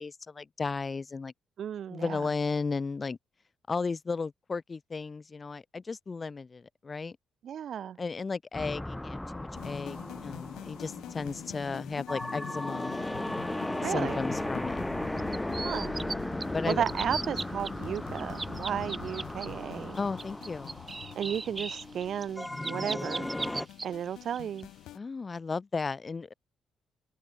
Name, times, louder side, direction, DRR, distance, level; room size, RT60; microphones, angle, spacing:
voice 1, 0.0-1.3 1.9-3.2 3.7-7.2 8.0-13.0 13.8-14.8 16.5-16.8 20.0-20.8 24.9-26.3, left 4 dB, 30° left, 2.0 m, -34 dB
voice 2, 1.6-2.3 7.4-8.0 13.8-14.3 15.6-15.9 16.7-20.0 21.1-23.3 23.8-24.7, right 9 dB, 65° right, 1.0 m, -34 dB
sound 1, 8.5-23.7, left 1 dB, 10° left, 1.1 m, -36 dB
sound 2, 9.5-25.0, left 14 dB, 85° left, 1.9 m, -46 dB
sound 3, 15.2-16.1 16.4-17.7 17.9-19.5 19.9-23.8 24.3-24.6, right 3 dB, 25° right, 1.0 m, -37 dB
open air
cardioid pair, 90°, 0 cm